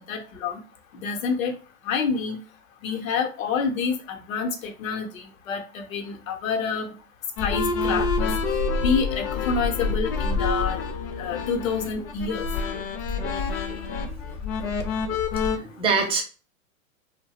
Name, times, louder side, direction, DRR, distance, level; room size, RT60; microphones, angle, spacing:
voice 1, 0.1-0.6 0.9-1.5 1.8-2.4 2.8-6.9 7.4-8.3 8.8-10.8 11.2-12.5, left 5 dB, 75° left, 4 dB, 0.8 m, -28 dB
sound 1, 7.4-15.6, left 4 dB, 40° left, 0.5 m, -27 dB
voice 2, 13.4-13.8 14.1-14.2 15.6-16.2, right 5 dB, 15° right, 2 dB, 0.5 m, -26 dB
2.3 x 2.2 x 2.7 m, 0.36 s
hypercardioid pair, 115°, 41 cm